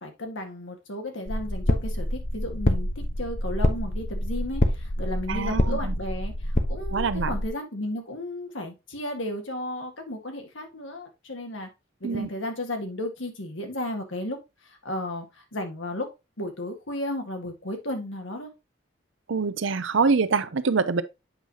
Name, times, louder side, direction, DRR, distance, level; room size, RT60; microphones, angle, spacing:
voice 1, 0.0-11.7 12.0-14.4 14.6-16.1 16.4-18.5, left 1 dB, 90° left, 1.8 m, -34 dB
sound 1, 1.3-7.5, left 1 dB, 40° left, 0.9 m, -27 dB
voice 2, 5.3-5.9 6.9-7.4 12.0-12.3 19.3-21.0, right 4 dB, 85° right, 0.7 m, -25 dB
8.0 x 5.6 x 2.8 m
head